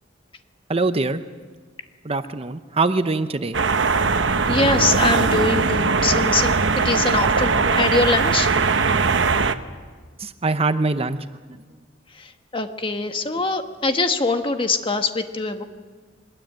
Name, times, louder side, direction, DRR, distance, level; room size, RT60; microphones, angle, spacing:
voice 1, 0.7-1.2 2.0-3.6 10.2-11.2 11.5-11.6, right 3 dB, 30° right, 10 dB, 0.8 m, -23 dB
sound 1, 3.5-9.5, right 4 dB, 90° right, 1.1 m, -20 dB
voice 2, 4.5-8.5 12.2-15.6, left 3 dB, 30° left, 6 dB, 1.5 m, -23 dB
23.5 x 20.5 x 9.1 m, 1.5 s
head